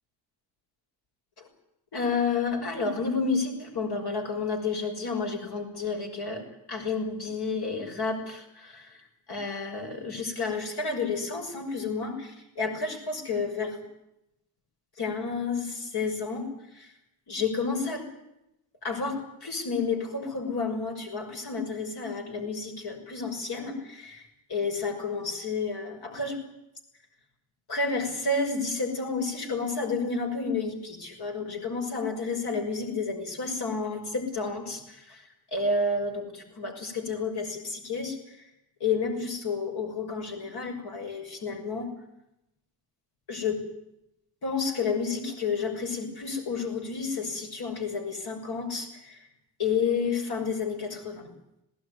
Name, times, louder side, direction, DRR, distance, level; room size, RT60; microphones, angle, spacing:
voice 1, 1.9-9.0 9.3-13.8 15.0-16.5 16.7-16.9 17.3-18.0 18.8-24.2 24.5-26.4 27.7-35.2 35.5-38.2 38.8-41.9 43.3-43.7 44.4-49.2 49.6-51.3, left 4 dB, 55° left, 2 dB, 6.5 m, -30 dB
19.5 x 17.5 x 9.7 m, 0.85 s
cardioid pair, 90°, 45 cm